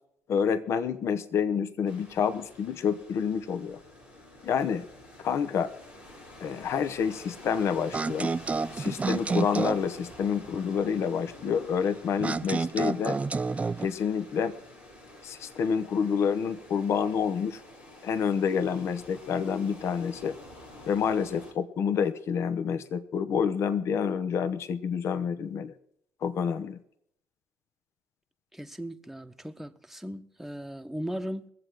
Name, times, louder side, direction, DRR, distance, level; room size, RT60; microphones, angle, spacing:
voice 1, 0.3-3.8 4.4-4.9 5.2-5.7 6.4-8.3 8.7-13.2 13.8-14.6 15.2-17.6 18.0-20.4 20.9-25.7 26.2-26.8, left 7 dB, 55° left, 0.9 m, -28 dB
sound 1, 1.8-21.5, left 1 dB, 90° left, 2.6 m, -49 dB
sound 2, 7.9-9.9 12.2-13.9, right 4 dB, 25° right, 0.4 m, -29 dB
voice 2, 28.5-31.5, equal, 5° right, 1.0 m, -37 dB
22.5 x 7.7 x 4.6 m
hypercardioid pair, 55°, 5 cm